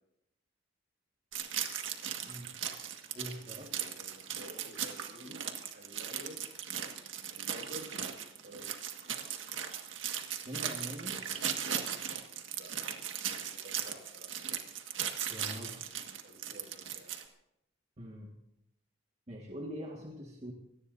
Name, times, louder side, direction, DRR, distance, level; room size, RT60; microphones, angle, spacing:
sound 1, 1.3-17.2, right 9 dB, 80° right, 1.7 m, -38 dB
voice 1, 2.2-2.5 3.1-3.7 10.4-11.2 15.3-15.9 18.0-18.3 19.3-20.5, equal, 35° right, -1 dB, 1.8 m, -43 dB
voice 2, 3.5-5.4 5.7-6.4 7.3-7.9 8.4-8.8 12.5-12.7 13.3-14.3 16.2-17.1, right 1 dB, 60° right, 1 dB, 6.1 m, -51 dB
25.0 x 18.5 x 2.7 m, 0.82 s
head